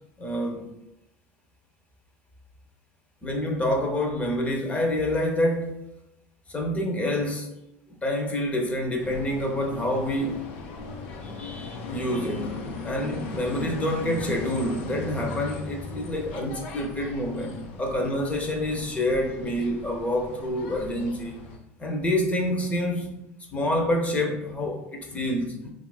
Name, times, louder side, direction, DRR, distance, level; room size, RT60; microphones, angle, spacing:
voice 1, 0.2-0.7 3.2-5.8 6.5-7.6 7.9-10.5 11.2-21.4 21.8-23.1 23.5-25.7, left 1 dB, 20° left, 1 dB, 0.6 m, -27 dB
sound 1, 9.0-21.6, left 3 dB, 80° left, 0.4 m, -38 dB
2.9 x 2.4 x 2.3 m, 0.90 s
supercardioid pair, 95°, 7 cm